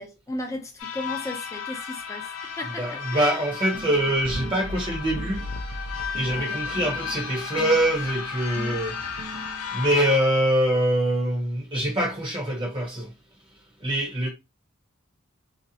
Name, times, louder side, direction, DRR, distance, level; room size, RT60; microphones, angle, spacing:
voice 1, 0.0-3.4 6.3-6.6, left 1 dB, 15° left, 0.5 m, -36 dB
sound 1, 0.8-10.2, left 6 dB, 85° left, 0.6 m, -34 dB
voice 2, 2.8-5.4 6.1-8.9 9.2-13.1 13.8-14.3, right 1 dB, 25° right, 0.8 m, -24 dB
sound 2, 3.7-9.9, equal, 45° right, 0.3 m, -37 dB
2.5 x 2.1 x 2.7 m
head